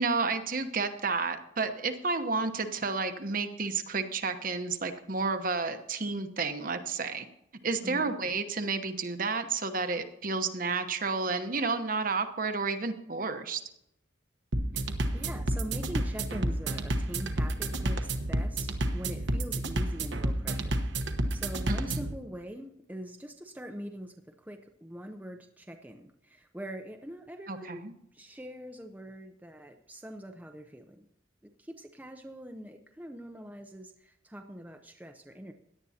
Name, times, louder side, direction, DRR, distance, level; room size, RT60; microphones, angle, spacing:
voice 1, 0.0-7.3 7.6-13.6 21.7-22.0 27.5-27.9, right 4 dB, 45° right, 7 dB, 1.0 m, -31 dB
voice 2, 7.8-8.1 14.7-20.7 21.0-27.8 28.1-31.0 31.6-35.5, equal, 10° right, 4 dB, 0.6 m, -43 dB
sound 1, 14.5-22.1, right 1 dB, 65° right, 1.1 m, -30 dB
17.0 x 10.5 x 2.8 m, 0.79 s
head